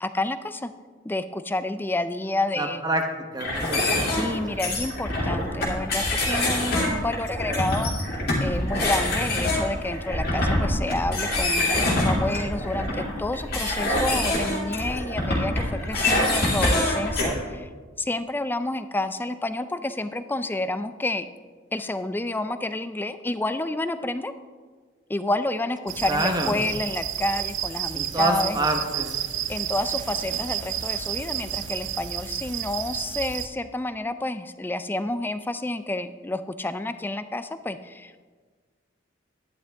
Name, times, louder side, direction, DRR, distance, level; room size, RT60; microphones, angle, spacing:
voice 1, 0.0-0.7 1.0-2.8 4.1-17.7 18.0-21.3 21.7-24.3 25.1-28.6 29.5-38.3, left 2 dB, 10° left, 11 dB, 0.4 m, -29 dB
voice 2, 2.6-3.0 3.3-4.0 4.3-4.6 26.1-26.6 27.9-29.2, right 2 dB, 20° right, 4 dB, 0.9 m, -27 dB
sound 1, 3.4-17.3, left 1 dB, 55° left, 2.5 m, -25 dB
sound 2, 25.9-33.5, right 10 dB, 70° right, 0.6 m, -31 dB
12.0 x 10.5 x 3.5 m, 1.5 s
head